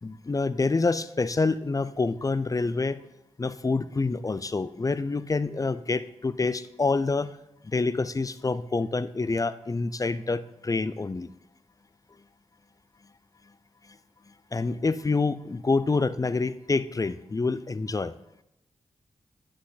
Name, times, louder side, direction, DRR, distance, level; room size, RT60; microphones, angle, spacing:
voice 1, 0.0-3.0 3.4-7.3 7.7-11.3 14.5-18.1, left 3 dB, 30° left, 16 dB, 0.5 m, -27 dB
9.8 x 6.2 x 4.1 m, 0.84 s
cardioid pair, 45°, 12 cm